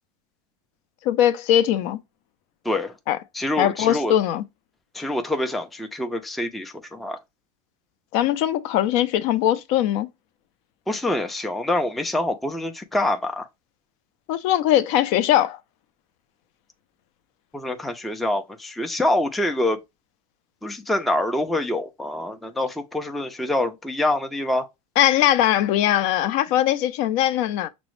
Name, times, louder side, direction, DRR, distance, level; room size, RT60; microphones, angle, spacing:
voice 1, 1.0-2.0 3.1-3.2 3.6-4.4 8.1-10.1 14.3-15.6 25.0-27.7, left 12 dB, 60° left, 0.4 m, -20 dB
voice 2, 3.3-4.1 4.9-7.2 10.9-13.5 17.5-19.8 20.6-24.7, left 1 dB, ahead, 0.3 m, -25 dB
6.0 x 2.0 x 3.0 m
supercardioid pair, 120°, 20 cm